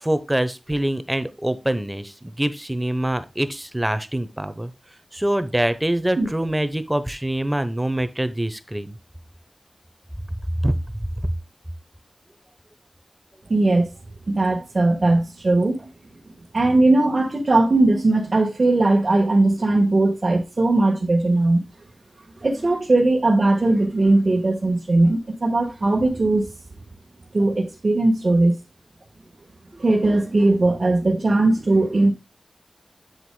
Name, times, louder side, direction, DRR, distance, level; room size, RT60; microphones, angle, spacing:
voice 1, 0.0-4.7 5.1-9.0 10.3-10.4 10.6-11.3 29.7-29.8, right 1 dB, 10° right, 0.9 m, -25 dB
voice 2, 13.5-13.9 14.3-15.9 16.5-21.6 22.4-26.5 27.3-28.6 29.8-32.1, right 2 dB, 45° right, 1.4 m, -19 dB
8.0 x 7.9 x 2.2 m
wide cardioid pair, 95°, 0 cm